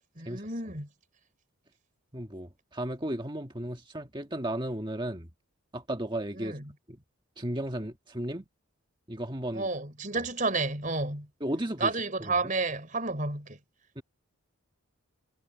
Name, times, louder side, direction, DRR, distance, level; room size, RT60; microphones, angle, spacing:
voice 1, 0.2-0.9 6.4-6.6 9.5-11.3 11.8-13.6, right 3 dB, 35° right, 4.8 m, -31 dB
voice 2, 2.1-5.3 5.7-6.6 6.9-7.0 7.4-8.4 9.1-9.7 10.1-10.2 11.4-11.9 12.2-12.5 13.9-14.0, right 1 dB, 20° right, 1.7 m, -34 dB
head